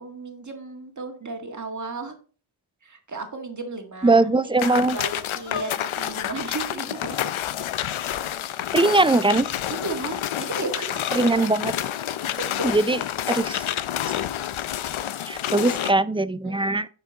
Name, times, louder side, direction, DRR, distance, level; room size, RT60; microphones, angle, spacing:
voice 1, 0.0-2.1 2.8-4.3 4.6-7.2 9.7-11.5 12.4-12.5 16.4-16.7, right 3 dB, 35° right, 4 dB, 1.8 m, -34 dB
voice 2, 4.0-5.0 8.7-9.5 11.1-11.7 12.6-13.0 13.3-13.7 15.3-16.9, right 2 dB, 10° right, 15 dB, 0.3 m, -20 dB
sound 1, 4.6-15.9, left 11 dB, 80° left, 0.6 m, -29 dB
9.1 x 6.0 x 3.9 m, 0.40 s
wide cardioid pair, 80°, 48 cm